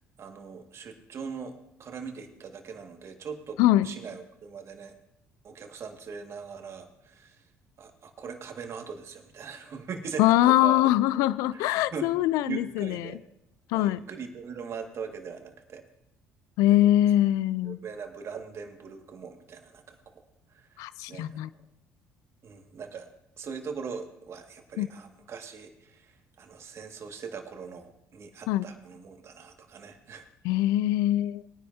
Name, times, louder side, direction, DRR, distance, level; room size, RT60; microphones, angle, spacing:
voice 1, 0.2-4.9 5.4-7.5 7.8-10.8 11.1-11.6 11.9-12.1 12.4-13.2 13.7-15.8 16.7-16.9 17.6-21.5 22.4-23.1 23.4-30.3, right 5 dB, 50° right, 4 dB, 2.0 m, -41 dB
voice 2, 10.2-13.1 13.7-14.0 16.6-17.8 20.8-21.5 24.8-24.9 28.5-28.6 30.4-31.4, left 14 dB, 80° left, 18 dB, 0.4 m, -23 dB
20.5 x 10.0 x 2.8 m, 0.79 s
supercardioid pair, 70°, 6 cm